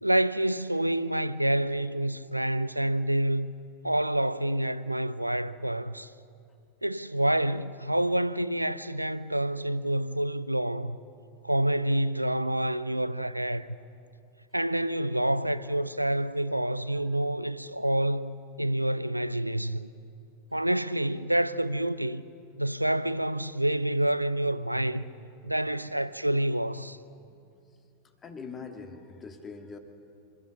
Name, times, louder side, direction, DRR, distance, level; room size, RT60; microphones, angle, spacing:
voice 1, 0.0-3.5 3.8-6.1 6.8-11.0 11.4-13.7 14.5-19.9 20.5-22.2 22.6-25.1 25.4-27.0, right 1 dB, 85° right, 0.5 m, -28 dB
voice 2, 28.2-29.8, left 5 dB, 20° left, 2.0 m, -42 dB
27.5 x 14.5 x 6.5 m
figure-of-eight pair, 90°, 0 cm